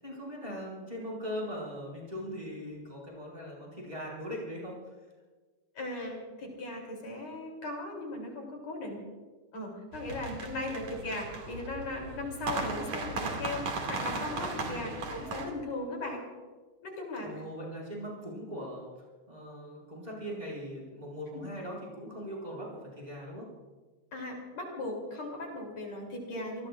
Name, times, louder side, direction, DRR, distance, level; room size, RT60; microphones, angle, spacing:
voice 1, 0.0-4.8 10.0-10.2 14.6-14.8 17.2-18.9 19.3-23.5, equal, 10° right, -4 dB, 6.0 m, -40 dB
voice 2, 5.8-9.0 9.5-16.3 16.8-17.3 24.1-26.7, left 2 dB, 60° left, 0 dB, 4.4 m, -38 dB
sound 1, 9.9-15.5, right 3 dB, 65° right, 3.6 m, -37 dB
28.5 x 19.5 x 2.5 m, 1.3 s
omnidirectional pair, 3.4 m